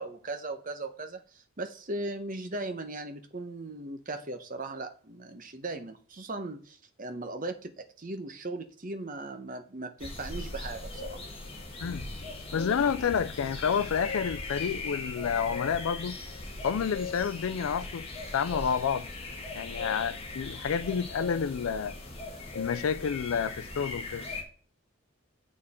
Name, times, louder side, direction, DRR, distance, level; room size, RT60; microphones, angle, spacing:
voice 1, 0.0-11.2, right 2 dB, 40° right, 0.9 m, -38 dB
sound 1, 10.0-24.4, left 3 dB, 25° left, 1.9 m, -39 dB
voice 2, 11.8-16.2 16.6-18.1 18.3-19.1 19.5-21.9 22.5-24.3, left 7 dB, 75° left, 0.4 m, -29 dB
7.5 x 6.5 x 4.3 m
head